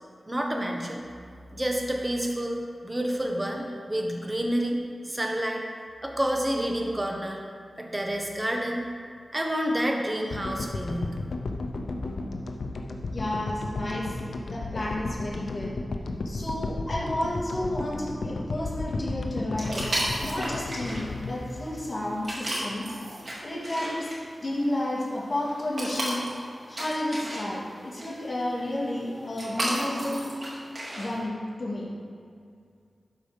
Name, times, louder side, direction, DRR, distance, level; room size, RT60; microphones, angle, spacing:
voice 1, 0.3-1.0 1.5-4.8 5.0-5.6 6.0-7.4 7.8-8.8 9.3-11.2, equal, 20° right, 1 dB, 1.3 m, -29 dB
sound 1, 10.3-22.6, left 2 dB, 75° left, 0.7 m, -34 dB
voice 2, 13.1-14.1 14.5-15.7 16.2-19.7 20.2-22.9 23.4-24.1 24.4-26.3 26.7-30.3 30.9-31.9, left 1 dB, 40° left, -6 dB, 2.6 m, -31 dB
sound 2, 19.6-31.2, right 1 dB, 45° right, 2.7 m, -35 dB
12.0 x 4.9 x 5.3 m, 2.2 s
wide cardioid pair, 85°, 0 cm